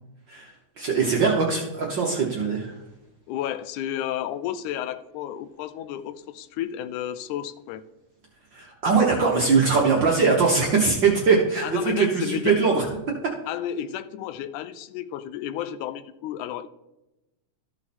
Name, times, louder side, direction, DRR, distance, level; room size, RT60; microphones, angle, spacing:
voice 1, 0.3-2.7 8.5-12.8, right 5 dB, 60° right, -2 dB, 1.2 m, -21 dB
voice 2, 3.3-7.8 11.6-12.6 13.5-16.7, left 10 dB, 90° left, 13 dB, 2.0 m, -32 dB
13.5 x 4.8 x 4.2 m, 0.96 s
omnidirectional pair, 3.4 m